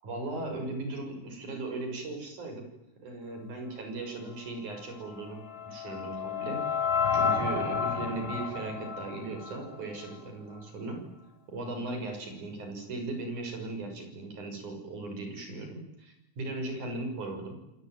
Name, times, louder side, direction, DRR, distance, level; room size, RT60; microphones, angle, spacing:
voice 1, 0.0-2.7 3.0-6.8 7.1-11.1 11.5-17.7, right 2 dB, 65° right, 5 dB, 8.1 m, -38 dB
sound 1, 5.1-10.3, left 6 dB, 15° left, 3.4 m, -31 dB
29.5 x 19.5 x 9.4 m, 0.89 s
omnidirectional pair, 3.7 m